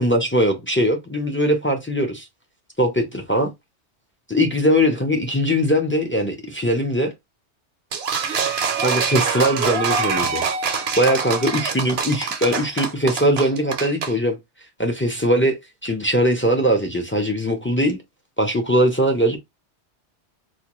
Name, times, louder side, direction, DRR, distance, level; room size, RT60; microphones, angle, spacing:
voice 1, 0.0-2.3 2.8-3.5 4.3-7.1 8.8-10.4 11.0-14.4 14.8-18.0 18.4-19.4, equal, 15° left, 0.4 m, -20 dB
sound 1, 7.9-14.1, right 6 dB, 65° right, 0.9 m, -24 dB
4.1 x 2.2 x 3.0 m
omnidirectional pair, 1.2 m